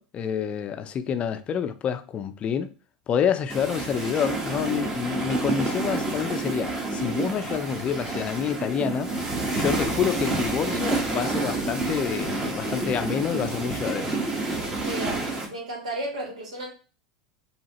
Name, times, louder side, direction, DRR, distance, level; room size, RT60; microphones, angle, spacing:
voice 1, 0.0-2.7 3.1-9.1 9.5-14.1, left 8 dB, 35° left, 0.4 m, -28 dB
sound 1, 3.5-15.5, right 2 dB, 20° right, 1.2 m, -29 dB
voice 2, 14.8-16.7, right 2 dB, 75° right, 1.8 m, -34 dB
4.7 x 2.8 x 2.9 m
hypercardioid pair, 85°, 3 cm